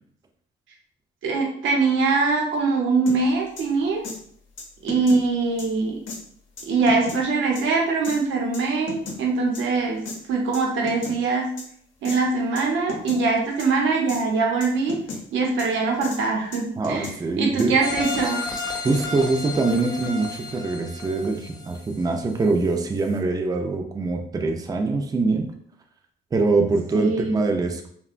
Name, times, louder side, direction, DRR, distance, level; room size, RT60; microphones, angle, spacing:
voice 1, 1.2-4.0 4.8-6.0 6.7-10.0 10.3-11.5 12.0-15.0 15.3-17.1 17.4-18.4 26.9-27.5, right 4 dB, 75° right, 0 dB, 0.7 m, -22 dB
sound 1, 3.1-3.2 3.6-3.7 4.0-4.2 4.6-5.2 5.6-5.7 6.1-6.2 6.6-7.2 7.5-7.6 8.0-8.2 8.5-9.2 9.5-9.6 10.0-10.2 10.5-11.2 11.6-11.7 12.0-12.2 12.6-12.7 12.9-13.2 13.6-13.7 14.1-14.2 14.6-15.2 15.6-15.7 16.0-16.2 16.5-17.2 17.6-17.7 18.0-18.2 18.6-19.1, left 4 dB, 80° left, 0.7 m, -34 dB
voice 2, 16.8-17.8 18.8-25.5 26.3-27.9, right 3 dB, 20° right, 4 dB, 0.4 m, -24 dB
sound 2, 17.8-22.6 23.0-23.1, left 3 dB, 20° left, 0.6 m, -33 dB
2.7 x 2.1 x 2.5 m, 0.62 s
cardioid pair, 90°, 20 cm